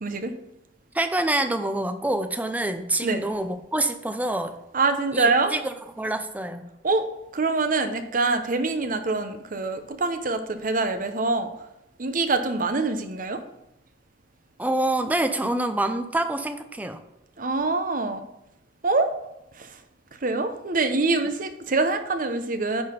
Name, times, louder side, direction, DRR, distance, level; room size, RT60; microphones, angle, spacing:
voice 1, 0.0-0.3 3.0-3.3 4.7-5.5 6.8-7.1 7.3-11.5 12.0-13.4 17.4-18.3 18.8-19.1 19.6-19.8 20.2-22.8, right 3 dB, 50° right, 8 dB, 0.8 m, -25 dB
voice 2, 0.9-4.5 5.1-5.6 6.0-6.7 14.6-17.0, right 1 dB, 10° right, 8 dB, 0.6 m, -26 dB
10.0 x 4.3 x 5.5 m, 0.86 s
head